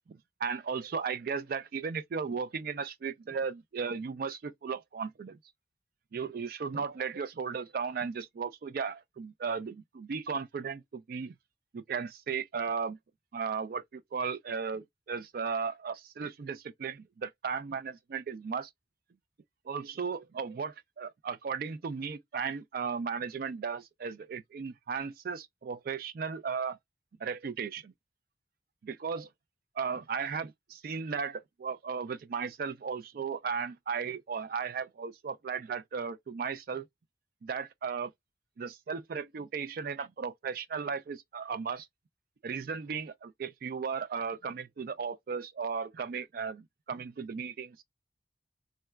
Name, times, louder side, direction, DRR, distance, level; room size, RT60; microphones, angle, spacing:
voice 1, 0.1-5.4 6.1-11.3 11.7-13.0 13.3-18.7 19.7-26.8 27.2-27.9 28.8-29.3 29.8-36.9 37.4-38.1 38.6-41.9 42.4-47.8, right 5 dB, 50° right, 0.3 m, -36 dB
3.7 x 2.2 x 2.2 m
head